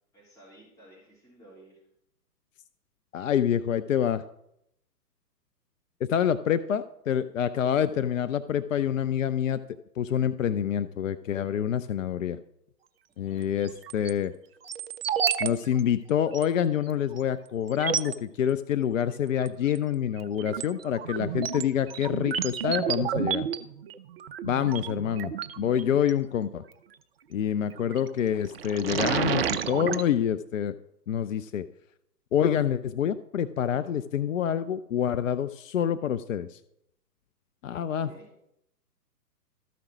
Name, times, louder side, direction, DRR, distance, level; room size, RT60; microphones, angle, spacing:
voice 1, 0.1-1.8 13.3-13.5 24.7-24.9 38.0-38.3, right 1 dB, 5° left, -6 dB, 3.0 m, -53 dB
voice 2, 3.1-4.2 6.0-9.6 10.0-12.4 13.2-14.3 15.4-23.5 24.4-25.3 25.6-26.6 27.3-30.7 31.1-31.6 32.3-36.6 37.6-38.1, left 9 dB, 55° left, 12 dB, 0.5 m, -27 dB
sound 1, 13.6-14.1 14.7-15.5 15.8-15.9 16.3-16.4 17.2-17.3 17.7-18.2 19.4-19.8 20.2-26.1 27.7-28.1 28.5-30.0, right 8 dB, 40° right, 0.5 m, -31 dB
13.0 x 5.0 x 6.1 m, 0.79 s
figure-of-eight pair, 120°, 49 cm